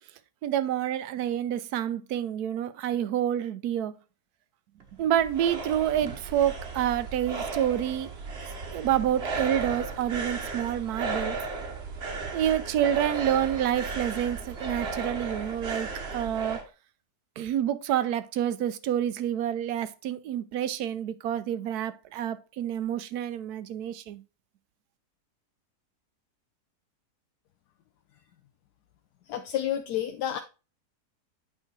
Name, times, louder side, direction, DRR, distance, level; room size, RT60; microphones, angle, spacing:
voice 1, 0.4-3.9 5.0-8.1 8.7-11.4 12.3-16.6 17.4-24.2, right 10 dB, 75° right, 1.1 m, -28 dB
sound 1, 4.8-16.6, right 4 dB, 45° right, 1.2 m, -35 dB
voice 2, 29.3-30.4, left 11 dB, 80° left, 1.2 m, -30 dB
8.9 x 3.4 x 4.5 m
omnidirectional pair, 1.7 m